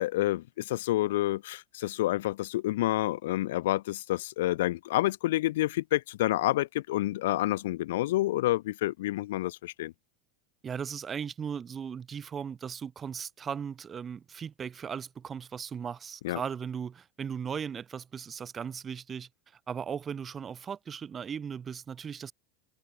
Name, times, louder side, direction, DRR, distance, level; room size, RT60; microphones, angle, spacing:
voice 1, 0.0-9.9 16.2-16.4, left 16 dB, 80° left, 5.3 m, -28 dB
voice 2, 10.6-19.3 19.7-22.3, right 7 dB, 25° right, 5.5 m, -37 dB
supercardioid pair, 120°, 0 cm